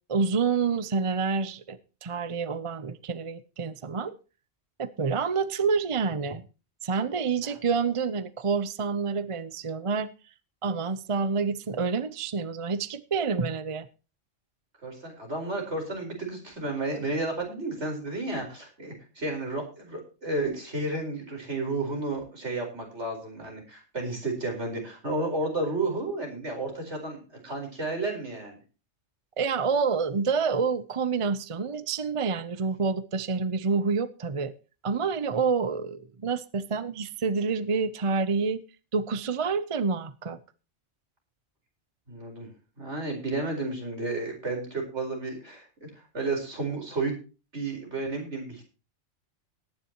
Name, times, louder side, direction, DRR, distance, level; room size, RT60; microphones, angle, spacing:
voice 1, 0.1-4.1 4.8-6.5 6.8-10.1 10.6-13.9 29.4-34.5 34.8-38.6 38.9-40.4, right 5 dB, 35° right, 0.6 m, -28 dB
voice 2, 14.8-28.6 42.1-42.5 42.8-45.9 46.1-47.1 47.5-48.6, right 2 dB, 65° right, 5.0 m, -32 dB
19.0 x 10.0 x 3.0 m
omnidirectional pair, 1.2 m